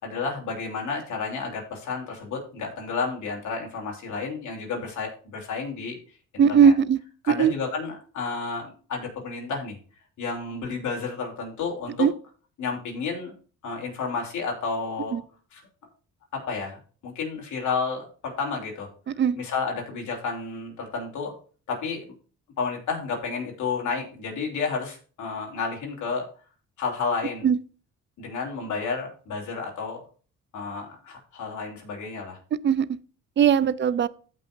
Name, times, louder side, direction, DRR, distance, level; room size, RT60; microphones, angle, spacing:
voice 1, 0.0-6.0 6.3-6.7 7.2-9.8 10.2-12.1 12.6-13.3 13.6-15.2 15.5-15.6 16.3-16.8 17.0-18.9 19.4-21.3 21.7-22.1 22.6-26.3 26.8-27.5 28.2-30.0 30.5-32.4, left 4 dB, 75° left, 3.2 m, -31 dB
voice 2, 6.4-7.0 7.3-7.5 12.0-12.1 15.1-15.2 19.2-19.4 27.4-27.6 32.6-33.0 33.4-34.1, right 7 dB, 40° right, 0.5 m, -19 dB
15.0 x 5.5 x 2.6 m
cardioid pair, 90°, 30 cm